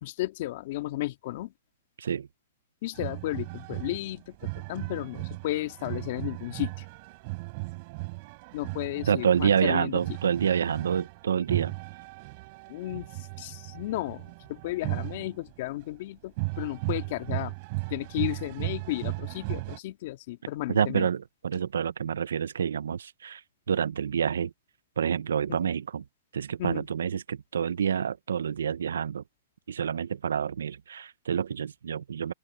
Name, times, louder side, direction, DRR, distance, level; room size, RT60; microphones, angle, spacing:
voice 1, 0.0-1.5 2.8-6.9 8.5-10.0 12.7-17.5 17.9-21.1 25.5-25.6 26.6-26.9, left 17 dB, 50° left, 2.0 m, -34 dB
sound 1, 2.9-15.8 16.4-19.8, right 27 dB, 40° right, 3.9 m, -36 dB
voice 2, 9.1-11.7 20.7-24.5 25.0-26.0 26.3-29.2 29.7-32.3, right 8 dB, 85° right, 0.5 m, -28 dB
open air
hypercardioid pair, 150°, 0 cm